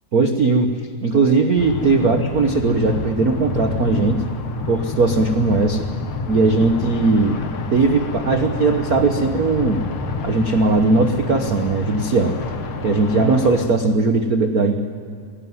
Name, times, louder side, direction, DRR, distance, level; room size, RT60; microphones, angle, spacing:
voice 1, 0.1-4.2 4.7-5.9 6.3-7.4 7.7-9.8 10.2-12.4 12.8-14.8, right 3 dB, 70° right, 5 dB, 0.8 m, -18 dB
sound 1, 1.6-13.7, left 4 dB, 60° left, 2.6 m, -28 dB
21.5 x 17.0 x 9.5 m, 2.4 s
omnidirectional pair, 3.3 m